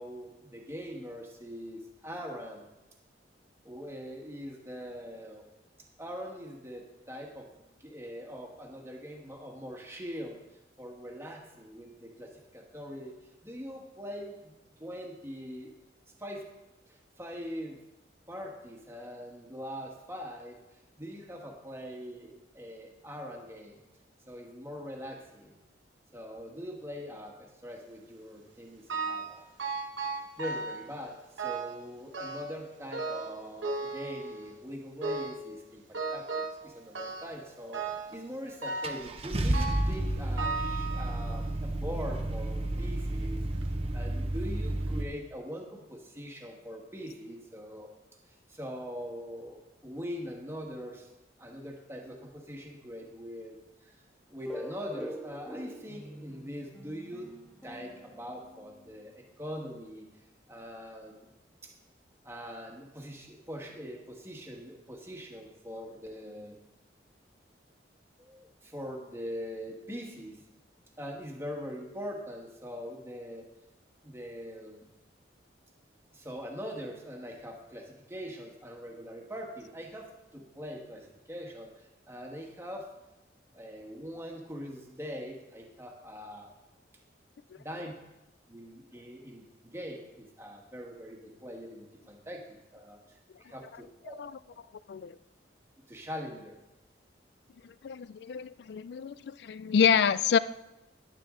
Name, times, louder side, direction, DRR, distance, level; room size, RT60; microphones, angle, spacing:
voice 1, 0.0-2.6 3.6-5.5 6.0-7.5 7.8-10.4 10.8-14.5 14.8-15.7 16.2-16.5 16.9-17.8 18.3-23.8 24.3-25.6 26.1-29.4 30.4-36.3 36.6-43.4 43.9-47.9 48.3-51.1 51.4-53.9 54.3-57.3 57.6-60.1 60.5-61.3 61.6-61.7 62.2-66.6 68.2-70.4 71.0-73.5 74.0-74.9 76.1-82.9 83.5-86.5 87.6-87.9 88.5-94.1 95.9-96.6, equal, 15° right, 1 dB, 1.4 m, -42 dB
sound 1, 28.9-29.3 29.6-30.9 31.4-31.8 32.1-32.6 32.9-34.6 35.0-35.5 35.9-36.6 37.0-37.4 37.7-38.2 38.6-39.1 39.5-40.0 40.4-41.4 42.1-42.2 43.0-43.1 43.5-43.6, right 3 dB, 90° right, 1.1 m, -36 dB
Car / Engine starting, 38.1-38.2 38.8-45.0, right 1 dB, 30° right, 0.7 m, -31 dB
sound 2, 54.5-59.0, equal, ahead, 0.8 m, -44 dB
voice 2, 97.6-100.4, left 7 dB, 60° left, 17 dB, 0.3 m, -27 dB
11.0 x 10.5 x 3.7 m, 0.99 s
head